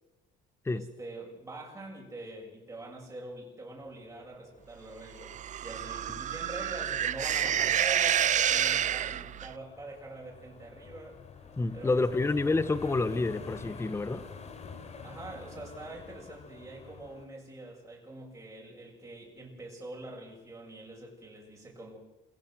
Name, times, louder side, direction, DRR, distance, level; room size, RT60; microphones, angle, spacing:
voice 1, 0.7-11.2 11.7-12.2 15.0-22.0, right 2 dB, 15° right, -3 dB, 6.9 m, -44 dB
sound 1, 3.8-17.3, left 5 dB, 40° left, 3.4 m, -49 dB
sound 2, 5.2-9.5, right 10 dB, 45° right, 0.8 m, -28 dB
voice 2, 11.6-14.2, left 3 dB, 15° left, 15 dB, 1.1 m, -28 dB
27.0 x 17.0 x 7.8 m, 1.0 s
cardioid pair, 110°, 17 cm